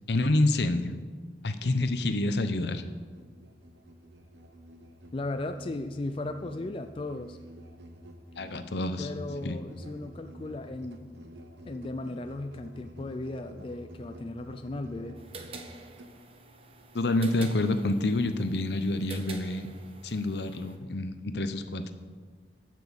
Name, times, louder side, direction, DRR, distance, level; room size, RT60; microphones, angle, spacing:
voice 1, 0.1-0.9 1.4-2.8 8.4-9.1 9.4-9.6 16.9-19.7 20.0-21.8, left 2 dB, 70° left, 10 dB, 0.8 m, -27 dB
Musical instrument, 1.5-16.2, equal, 75° right, 1.1 m, -49 dB
voice 2, 5.1-7.4 9.0-11.1 11.6-15.2, left 2 dB, 30° left, 8 dB, 0.4 m, -36 dB
sound 1, 15.2-20.8, right 4 dB, 35° right, 0.9 m, -47 dB
12.0 x 6.2 x 7.1 m, 1.5 s
head